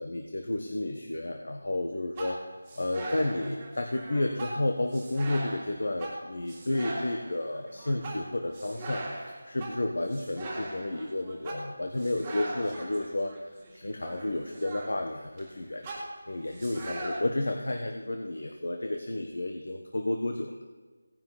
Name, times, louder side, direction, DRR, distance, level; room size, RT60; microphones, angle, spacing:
voice 1, 0.0-2.4 2.8-9.0 9.4-13.3 13.7-15.9 16.3-20.5, left 1 dB, 70° left, 3 dB, 1.4 m, -31 dB
sound 1, 2.2-15.5 15.8-17.2, right 1 dB, 10° right, 1.8 m, -40 dB
17.0 x 10.5 x 4.2 m, 1.4 s
figure-of-eight pair, 175°, 0 cm